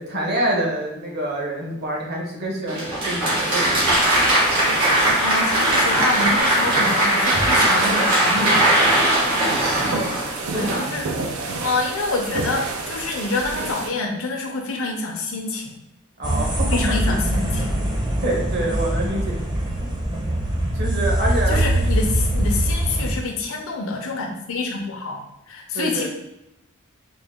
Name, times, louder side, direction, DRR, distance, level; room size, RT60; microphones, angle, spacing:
voice 1, 0.0-3.9 9.5-10.0 10.5-11.0 16.2-17.0 18.2-19.4 20.7-21.8 25.7-26.1, right 1 dB, 50° right, -1 dB, 0.9 m, -26 dB
Applause, 2.7-10.8, right 1 dB, 75° right, 1.5 m, -19 dB
sound 1, 3.7-13.9, right 3 dB, 90° right, 0.5 m, -30 dB
voice 2, 5.2-8.9 10.5-11.1 11.4-15.8 16.7-17.8 21.5-25.2 25.5-26.1, left 3 dB, 65° left, 1 dB, 0.6 m, -27 dB
sound 2, 16.2-23.1, right 1 dB, 20° right, 0.6 m, -23 dB
3.9 x 2.2 x 3.5 m, 0.90 s
head